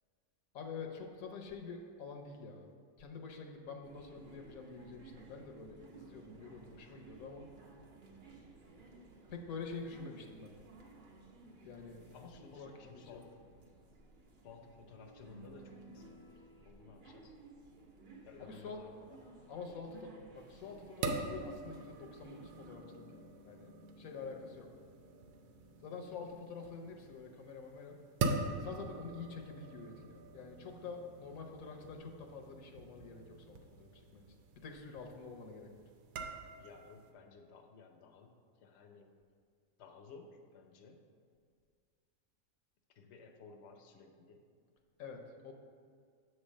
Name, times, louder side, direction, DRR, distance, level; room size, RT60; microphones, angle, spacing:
voice 1, 0.5-2.7 3.0-7.5 9.3-10.5 11.6-12.0 12.5-13.2 18.4-18.8 19.5-23.7 24.0-24.7 25.8-28.0 28.6-34.3 34.6-35.7 45.0-45.5, left 5 dB, 80° left, 3 dB, 1.2 m, -47 dB
sound 1, 3.8-22.8, right 3 dB, 45° right, 0.7 m, -57 dB
voice 2, 12.1-13.3 14.4-17.4 18.2-19.2 36.6-39.2 39.8-41.0 42.9-44.5, left 4 dB, 60° left, 3 dB, 0.8 m, -56 dB
sound 2, 20.4-37.1, right 3 dB, 90° right, 1.1 m, -44 dB
7.7 x 3.2 x 6.2 m, 2.1 s
omnidirectional pair, 1.5 m